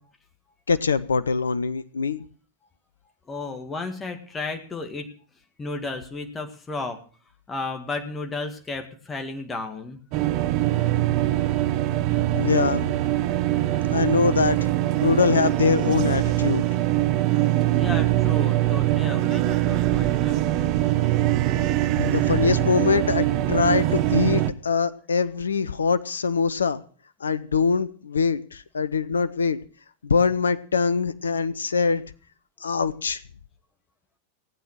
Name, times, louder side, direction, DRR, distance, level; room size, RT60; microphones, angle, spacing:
voice 1, 0.7-2.2 12.3-12.9 13.9-14.6 15.0-16.7 22.0-26.8 27.2-29.6 30.0-32.0 32.6-33.2, left 5 dB, 70° left, 16 dB, 0.7 m, -23 dB
voice 2, 3.3-5.1 5.6-7.0 7.5-10.0 17.7-21.1, left 3 dB, 15° left, 4 dB, 2.0 m, -33 dB
sound 1, 10.1-24.5, right 15 dB, 40° right, 1.0 m, -22 dB
17.5 x 9.1 x 6.3 m, 0.41 s
figure-of-eight pair, 90°, 0 cm